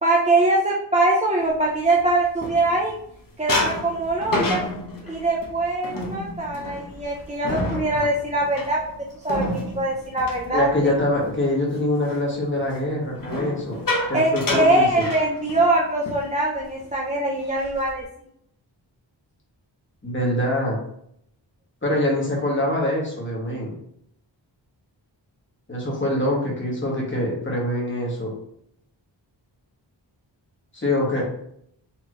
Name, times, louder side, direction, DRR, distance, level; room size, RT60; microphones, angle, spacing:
voice 1, 0.0-3.0 3.4-4.6 5.1-8.8 9.2-10.7 14.1-18.1, right 2 dB, 15° right, -3 dB, 0.6 m, -22 dB
sound 1, 1.6-3.0 3.5-11.3 11.7-12.0 13.2-15.8 16.1-16.3 16.6-16.9 17.3-18.0, left 1 dB, 45° left, 1.0 m, -30 dB
voice 2, 10.4-13.8 14.1-15.0 20.0-20.8 21.8-23.7 25.7-28.3 30.7-31.2, left 1 dB, 25° left, -3 dB, 1.6 m, -24 dB
4.3 x 3.0 x 3.1 m, 0.70 s
wide cardioid pair, 100°, 45 cm